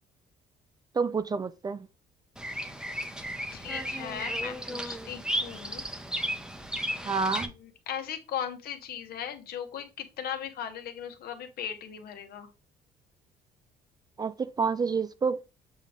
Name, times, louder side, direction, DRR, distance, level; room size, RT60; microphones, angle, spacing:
voice 1, 0.9-1.9 7.0-7.5 14.2-15.4, right 5 dB, 25° right, 0.4 m, -28 dB
Bird vocalization bird call bird song, 2.4-7.5, equal, 5° right, 0.8 m, -34 dB
voice 2, 3.5-5.9 7.5-12.5, left 9 dB, 65° left, 1.3 m, -38 dB
7.4 x 3.5 x 3.6 m
cardioid pair, 110°, 17 cm